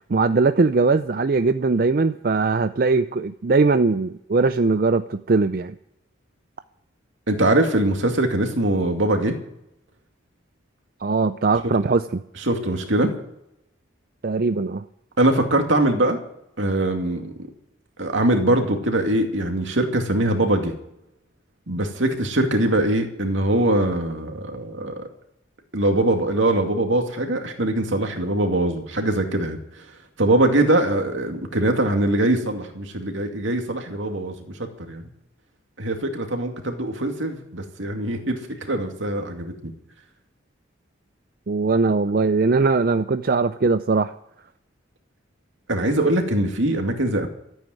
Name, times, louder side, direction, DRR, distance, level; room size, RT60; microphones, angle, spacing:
voice 1, 0.0-5.7 11.0-12.2 14.2-14.8 41.5-44.1, right 4 dB, 50° right, 11 dB, 0.5 m, -20 dB
voice 2, 7.3-9.4 12.4-13.1 15.2-16.2 16.6-17.3 18.0-20.7 21.7-25.1 25.7-29.8 30.2-34.3 34.8-35.0 35.8-38.4 38.7-39.7 45.7-47.3, right 1 dB, 75° right, 4 dB, 2.4 m, -22 dB
14.0 x 9.1 x 9.2 m, 0.81 s
head